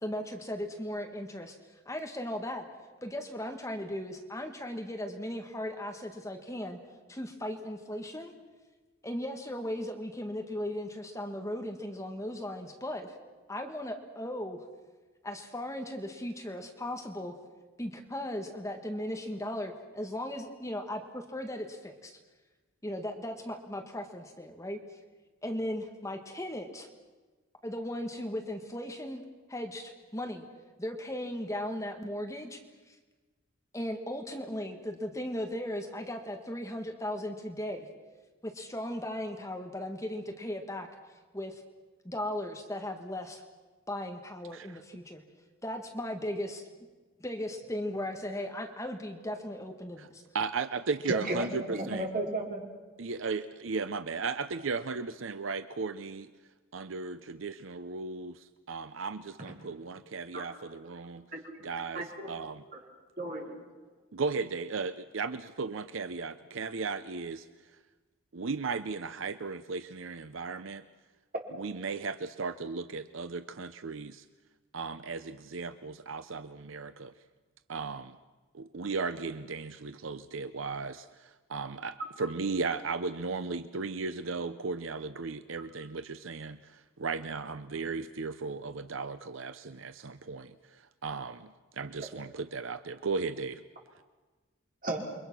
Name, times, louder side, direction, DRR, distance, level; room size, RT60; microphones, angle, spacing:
voice 1, 0.0-1.6 1.8-2.6 3.0-6.8 7.1-8.3 9.0-13.1 13.5-14.6 15.2-17.3 17.8-22.2 22.8-24.8 25.4-26.9 27.6-29.2 29.5-30.4 30.8-32.6 32.9-33.0 33.7-37.9 38.4-40.9 41.3-41.6 42.0-43.4 43.9-45.2 45.6-46.7 47.2-50.2, left 1 dB, 15° left, 4 dB, 1.7 m, -37 dB
voice 2, 50.3-52.1 53.0-56.3 56.7-61.3 61.6-62.6 64.1-67.5 68.3-70.8 71.6-74.2 74.7-77.1 77.7-78.2 78.5-93.6, right 4 dB, 70° right, 11 dB, 0.7 m, -36 dB
voice 3, 51.1-52.6 59.4-59.5 60.3-60.5 61.3-61.4 61.9-62.3 62.7-62.8 63.2-63.6 94.8-95.0, right 1 dB, 40° right, -1 dB, 4.5 m, -34 dB
29.0 x 23.5 x 6.2 m, 1.3 s
head